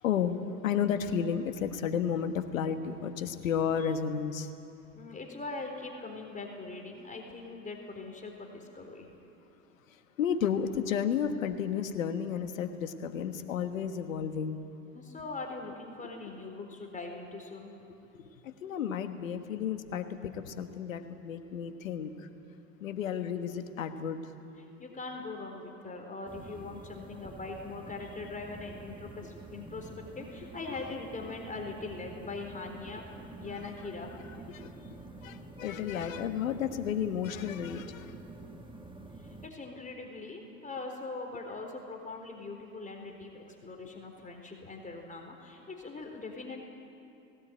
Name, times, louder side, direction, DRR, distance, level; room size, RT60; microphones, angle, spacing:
voice 1, 0.0-4.5 10.2-14.6 18.1-18.3 18.6-22.3 22.8-24.3 30.7-30.8 34.5-38.2, left 8 dB, 85° left, 8 dB, 1.5 m, -32 dB
voice 2, 5.0-9.1 14.9-17.7 24.6-29.9 30.2-33.0 33.4-34.1 39.2-46.6, left 3 dB, 20° left, 2 dB, 3.8 m, -41 dB
sound 1, 26.3-39.5, right 2 dB, 10° right, 1.6 m, -48 dB
19.5 x 17.5 x 9.3 m, 2.7 s
hypercardioid pair, 80°, 39 cm